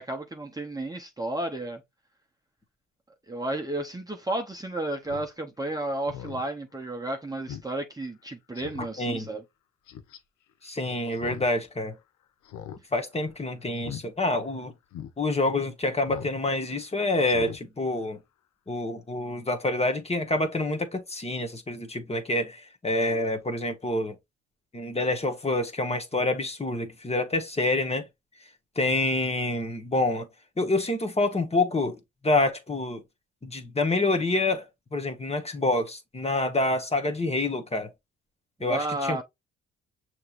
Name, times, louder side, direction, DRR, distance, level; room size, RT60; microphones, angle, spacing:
voice 1, 0.0-1.8 3.3-9.4 38.6-39.2, right 1 dB, 10° right, 0.8 m, -32 dB
Speech synthesizer, 5.0-5.3 5.6-5.7 6.1-6.4 6.8-6.9 7.5-7.7 8.0-8.1 8.5-8.9 9.9-10.2 11.1-11.5 11.8-11.9 12.4-12.8 13.1-13.3 13.8-14.0 14.4-14.5 14.9-15.1 16.1-16.3 16.7-16.8 17.2-17.6 17.9-18.0, left 10 dB, 75° left, 0.7 m, -40 dB
voice 2, 9.0-9.3 10.6-12.0 12.9-14.7 15.2-18.2 18.7-24.1 24.7-28.1 28.8-30.3 30.6-33.0 33.4-37.9 38.6-39.2, left 2 dB, 20° left, 1.1 m, -27 dB
6.5 x 3.0 x 2.5 m
cardioid pair, 90°, 30 cm